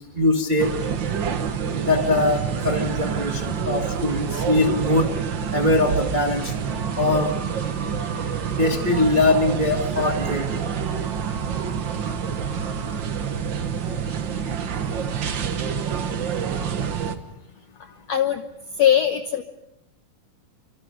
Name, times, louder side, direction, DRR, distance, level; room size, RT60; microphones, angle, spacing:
voice 1, 0.1-0.7 1.9-5.1 5.5-6.5 7.0-7.3 8.5-10.5, left 2 dB, 20° right, 2 dB, 1.4 m, -21 dB
sound 1, 0.6-17.2, right 7 dB, 65° right, 1.1 m, -27 dB
voice 2, 17.8-18.4 18.7-19.4, left 10 dB, 70° left, 7 dB, 1.6 m, -21 dB
29.5 x 26.5 x 5.3 m, 0.83 s
omnidirectional pair, 4.2 m